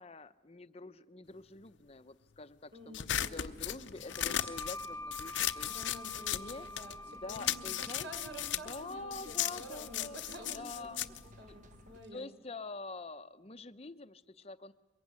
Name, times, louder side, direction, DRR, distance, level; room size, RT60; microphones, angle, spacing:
voice 1, 0.0-5.7 6.3-6.7 7.1-8.1 8.5-10.2 10.5-11.0 11.5-11.6 12.1-14.7, left 3 dB, 30° left, 12 dB, 0.8 m, -46 dB
voice 2, 2.7-3.4 5.7-11.1 11.4-12.3, equal, 65° right, 5 dB, 5.0 m, -49 dB
sound 1, 2.9-7.0 7.3-12.1, left 11 dB, 70° left, 0.8 m, -37 dB
sound 2, 3.3-12.0, right 1 dB, 40° right, 1.1 m, -58 dB
sound 3, 4.0-11.3, left 1 dB, 10° left, 1.4 m, -48 dB
23.5 x 22.0 x 9.7 m, 1.1 s
head